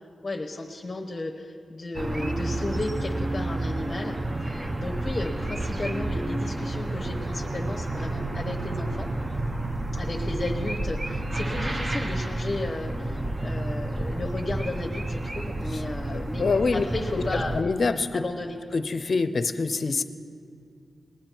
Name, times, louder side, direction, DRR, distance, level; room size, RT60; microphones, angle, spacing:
voice 1, 0.2-9.1 9.9-16.4 16.7-17.6 18.1-18.6, left 2 dB, 30° left, 1 dB, 0.9 m, -34 dB
sound 1, 1.9-17.6, right 1 dB, 25° right, 0.6 m, -30 dB
voice 2, 16.1-16.8 17.3-18.2 18.7-20.0, left 4 dB, 50° left, 11 dB, 0.6 m, -25 dB
20.0 x 8.7 x 4.5 m, 2.4 s
cardioid pair, 85°, 0 cm